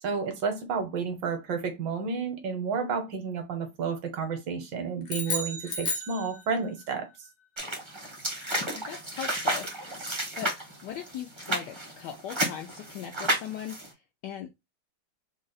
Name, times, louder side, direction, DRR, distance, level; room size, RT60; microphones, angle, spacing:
voice 1, 0.0-7.1, right 5 dB, 70° right, 1.4 m, -31 dB
sound 1, 5.0-6.8, left 1 dB, 55° left, 0.6 m, -33 dB
sound 2, 7.6-13.9, right 1 dB, 25° right, 0.6 m, -32 dB
voice 2, 8.7-10.5 10.8-14.5, left 9 dB, 75° left, 0.9 m, -40 dB
3.7 x 2.0 x 3.9 m
omnidirectional pair, 2.3 m